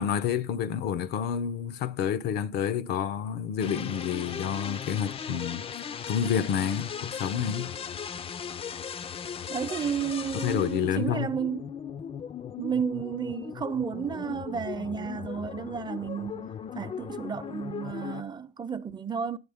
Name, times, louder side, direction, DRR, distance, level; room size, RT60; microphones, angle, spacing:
voice 1, 0.0-5.6 6.1-7.7 10.3-11.3, left 8 dB, 75° left, 0.7 m, -29 dB
sound 1, 3.6-18.2, left 7 dB, 35° left, 0.4 m, -38 dB
voice 2, 9.5-11.7 12.6-16.5 16.7-19.4, right 7 dB, 25° right, 0.7 m, -32 dB
9.5 x 7.6 x 3.5 m
cardioid pair, 110°, 17 cm